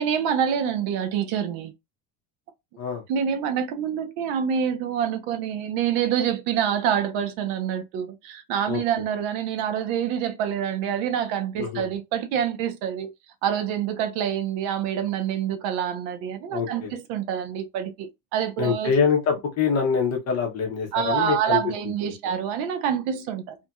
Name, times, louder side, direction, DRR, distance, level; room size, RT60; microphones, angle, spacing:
voice 1, 0.0-1.7 3.1-13.1 13.4-19.0 20.9-23.6, right 9 dB, 75° right, 0.7 m, -26 dB
voice 2, 16.5-16.9 18.6-21.6, left 6 dB, 35° left, 0.7 m, -24 dB
2.8 x 2.7 x 2.2 m
cardioid pair, 165°, 48 cm